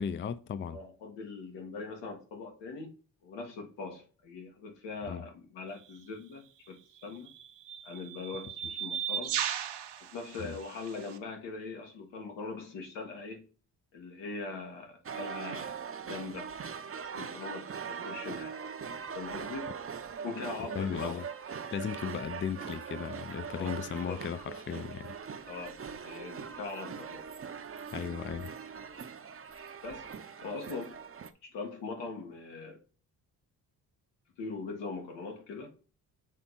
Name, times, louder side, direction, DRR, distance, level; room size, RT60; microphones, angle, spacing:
voice 1, 0.0-0.8 5.1-5.3 10.4-10.5 20.8-21.2 21.7-25.1 27.9-28.5, left 7 dB, 30° left, 0.5 m, -36 dB
voice 2, 0.7-2.9 3.2-7.3 7.8-9.4 10.1-13.5 13.9-15.8 16.0-16.5 17.1-18.6 19.1-19.7 20.2-21.2 23.5-24.2 25.5-27.2 29.8-30.1 30.4-31.0 31.4-32.8 34.4-35.7, left 3 dB, 85° left, 1.8 m, -41 dB
sound 1, 5.8-6.0 7.0-11.2, right 10 dB, 75° right, 1.0 m, -37 dB
sound 2, 15.1-31.3, right 6 dB, 30° right, 0.7 m, -41 dB
7.3 x 3.3 x 4.2 m
supercardioid pair, 60°, 42 cm